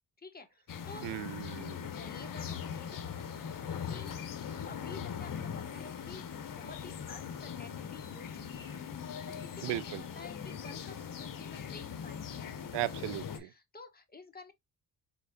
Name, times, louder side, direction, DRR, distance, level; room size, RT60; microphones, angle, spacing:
voice 1, 0.2-1.1 1.9-4.3 4.6-8.8 9.1-12.7 13.3-14.5, left 3 dB, 20° left, 1.7 m, -52 dB
sound 1, 0.7-13.4, left 7 dB, 50° left, 1.2 m, -41 dB
voice 2, 1.0-2.0 9.6-10.0 12.7-13.5, right 16 dB, 90° right, 0.6 m, -37 dB
4.6 x 4.2 x 2.6 m
cardioid pair, 75°, 41 cm